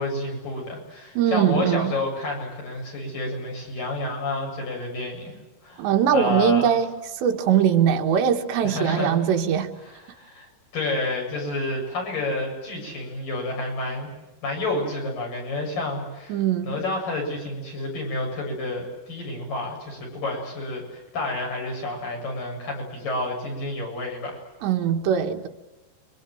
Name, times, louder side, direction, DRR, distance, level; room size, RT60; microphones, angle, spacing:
voice 1, 0.0-5.3 5.6-6.7 8.6-9.1 9.9-10.5 10.7-14.1 14.4-24.4, left 2 dB, 50° left, 9.2 m, -30 dB
voice 2, 1.2-1.9 5.8-9.7 16.3-16.8 24.6-25.5, right 9 dB, 85° right, 3.8 m, -21 dB
29.5 x 24.0 x 7.8 m
omnidirectional pair, 4.9 m